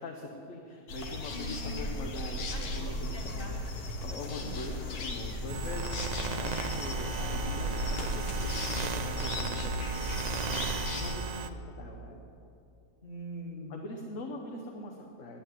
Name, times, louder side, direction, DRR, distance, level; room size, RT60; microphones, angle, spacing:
voice 1, 0.0-3.5 4.0-12.2 13.7-15.4, left 2 dB, 60° left, 2 dB, 1.4 m, -43 dB
sound 1, 0.9-11.1, left 1 dB, 85° left, 1.8 m, -35 dB
voice 2, 1.3-1.8 2.5-3.8 4.3-4.6 13.0-13.8, equal, 35° left, -2 dB, 2.4 m, -44 dB
sound 2, 5.5-11.5, right 5 dB, 70° right, 0.4 m, -36 dB
10.5 x 10.0 x 9.9 m, 2.6 s
omnidirectional pair, 1.6 m